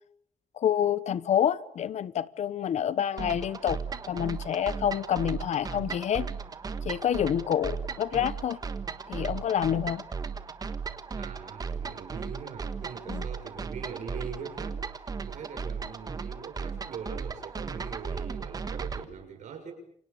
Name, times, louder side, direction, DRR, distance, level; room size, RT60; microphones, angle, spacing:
voice 1, 0.6-3.8 4.1-6.3 6.8-8.6 9.1-10.0 13.1-13.2, left 9 dB, 65° left, 1.1 m, -28 dB
sound 1, 3.2-19.0, right 5 dB, 30° right, 1.4 m, -36 dB
voice 2, 11.2-19.7, right 6 dB, 75° right, 6.9 m, -42 dB
28.5 x 26.5 x 7.1 m
wide cardioid pair, 175°, 13 cm